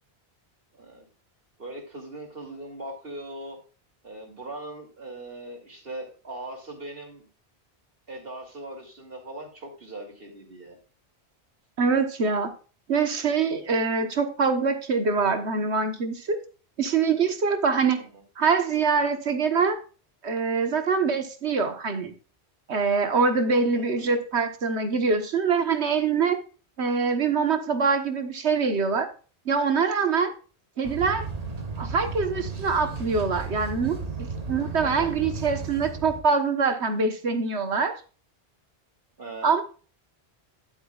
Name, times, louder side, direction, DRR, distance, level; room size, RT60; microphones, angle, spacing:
voice 1, 0.7-1.1 1.6-3.6 4.0-7.3 8.1-10.8 18.0-18.2 23.7-24.2 34.8-35.1 39.2-39.5, right 1 dB, 60° right, 1 dB, 3.3 m, -40 dB
voice 2, 11.8-12.5 12.9-16.4 16.8-18.0 18.4-19.8 20.2-22.1 22.7-26.4 26.8-29.1 29.4-30.3 30.8-31.3 31.8-37.9 39.4-39.6, right 5 dB, 80° right, 7 dB, 1.6 m, -24 dB
sound 1, 30.8-36.2, right 4 dB, 35° right, 1.3 m, -34 dB
11.5 x 9.0 x 2.4 m, 0.37 s
omnidirectional pair, 1.1 m